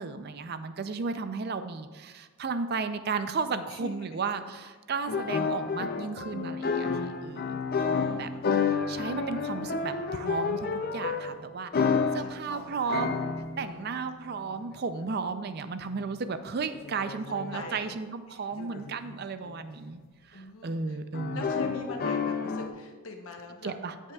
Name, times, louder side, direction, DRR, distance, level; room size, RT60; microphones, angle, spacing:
voice 1, 0.0-8.3 8.9-13.2 13.6-20.0 20.3-21.5 23.6-23.9, right 4 dB, 45° right, 10 dB, 0.4 m, -34 dB
voice 2, 3.7-4.1 7.7-8.5 12.1-12.9 13.6-14.1 17.2-18.0 18.3-18.4 20.3-21.0 21.3-23.7 24.0-24.1, left 2 dB, 70° left, 3 dB, 0.9 m, -43 dB
sound 1, 5.1-11.4 11.7-12.4 12.8-13.9 14.5-15.1 15.8-16.1 16.7-17.8 18.6-19.2 19.5-19.6 19.9-20.0 21.1-22.7, left 5 dB, 45° left, 0.4 m, -30 dB
14.5 x 5.5 x 2.3 m, 1.4 s
head